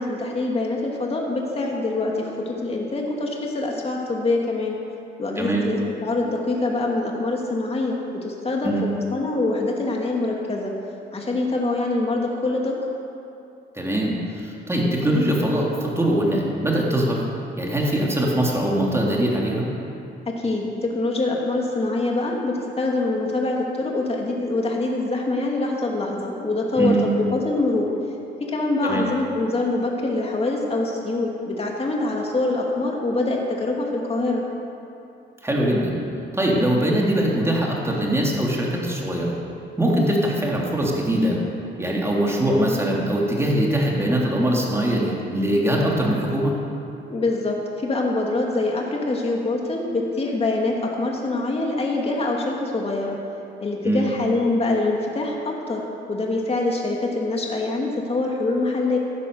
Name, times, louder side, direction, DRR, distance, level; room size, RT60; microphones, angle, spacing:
voice 1, 0.0-4.8 5.2-10.7 11.1-12.7 20.3-27.9 28.5-34.4 47.1-53.2 53.6-55.8 56.1-59.0, left 2 dB, 30° left, -1 dB, 2.5 m, -24 dB
voice 2, 5.4-5.7 8.6-8.8 13.7-17.2 17.6-19.7 26.8-27.1 28.8-29.0 35.4-36.0 36.3-39.3 39.8-41.4 41.8-46.6 53.8-54.1, right 1 dB, 15° right, -3 dB, 3.4 m, -22 dB
14.5 x 12.0 x 7.1 m, 2.7 s
cardioid pair, 90°, 20 cm